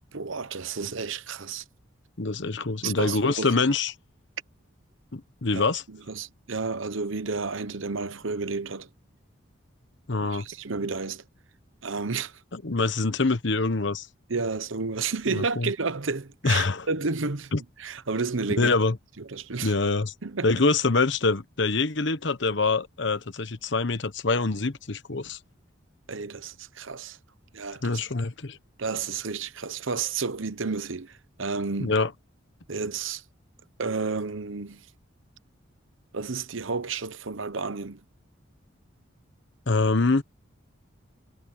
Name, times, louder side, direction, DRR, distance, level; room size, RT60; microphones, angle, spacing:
voice 1, 0.1-1.6 2.8-3.6 5.5-8.9 10.2-11.2 11.8-12.4 14.3-17.5 17.8-18.7 19.3-19.7 20.2-20.5 26.1-27.2 27.5-28.0 28.8-32.0 32.7-33.2 33.8-34.8 36.1-38.0, right 4 dB, 75° right, 1.0 m, -31 dB
voice 2, 2.2-3.9 5.1-5.8 10.1-10.5 12.5-14.1 15.3-15.7 16.4-16.9 17.5-17.6 18.6-19.0 19.6-20.1 20.4-25.4 27.8-28.6 31.8-32.1 39.7-40.2, left 3 dB, 65° left, 1.1 m, -25 dB
head